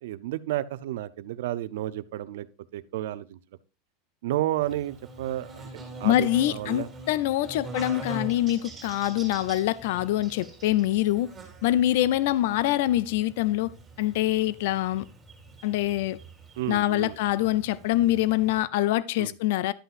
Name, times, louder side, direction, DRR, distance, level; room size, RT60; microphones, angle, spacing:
voice 1, 0.0-2.5 2.7-3.4 4.2-5.7 6.0-6.9 16.6-17.2 19.2-19.3, right 14 dB, 80° right, 0.5 m, -31 dB
Buzz, 4.6-18.6, right 2 dB, 10° right, 3.0 m, -43 dB
voice 2, 6.0-11.3 11.6-13.7 14.0-15.0 15.6-16.2 16.7-19.7, left 14 dB, 70° left, 0.4 m, -25 dB
11.0 x 8.0 x 2.5 m
supercardioid pair, 155°, 0 cm